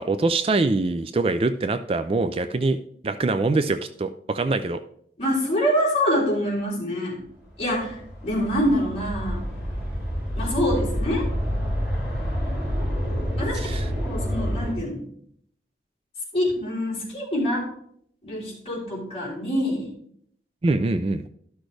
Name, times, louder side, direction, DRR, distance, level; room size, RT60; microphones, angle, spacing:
voice 1, 0.0-4.8 13.5-13.9 20.6-21.2, right 3 dB, 30° right, 10 dB, 0.3 m, -24 dB
voice 2, 5.2-7.2 7.6-9.4 10.3-11.3 13.4-13.6 14.0-15.0 16.3-17.7 18.2-19.9, equal, 35° left, -5 dB, 3.7 m, -25 dB
sound 1, 7.4-14.7, equal, 5° right, 4.3 m, -28 dB
12.5 x 6.2 x 3.3 m, 0.66 s
head